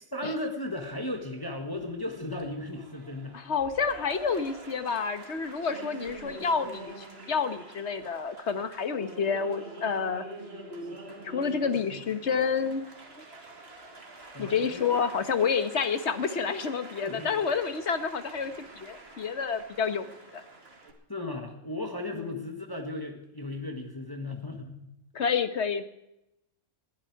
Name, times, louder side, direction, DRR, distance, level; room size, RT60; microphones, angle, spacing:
voice 1, 0.1-3.4 14.3-15.0 17.0-17.3 21.1-24.9, left 2 dB, 20° left, 4 dB, 1.5 m, -36 dB
Applause, 1.2-20.9, right 2 dB, 55° right, 2.5 m, -46 dB
voice 2, 3.3-10.2 11.2-12.9 14.4-20.1 20.3-20.4 22.1-22.4 25.1-25.9, left 6 dB, 65° left, 10 dB, 1.4 m, -29 dB
20.5 x 12.5 x 4.7 m, 0.89 s
omnidirectional pair, 1.3 m